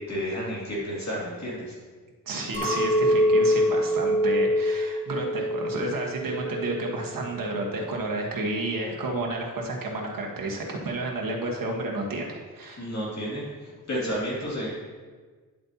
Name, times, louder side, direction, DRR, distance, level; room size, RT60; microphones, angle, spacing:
voice 1, 0.1-1.7 12.8-13.4 13.9-14.7, equal, 50° left, -6 dB, 2.5 m, -31 dB
voice 2, 2.3-12.9, right 2 dB, 70° right, 0 dB, 1.4 m, -31 dB
Chink clink, 2.5-6.9 7.3-7.9, left 1 dB, 25° left, 2.1 m, -25 dB
10.0 x 7.6 x 2.9 m, 1.4 s
wide cardioid pair, 140°, 35 cm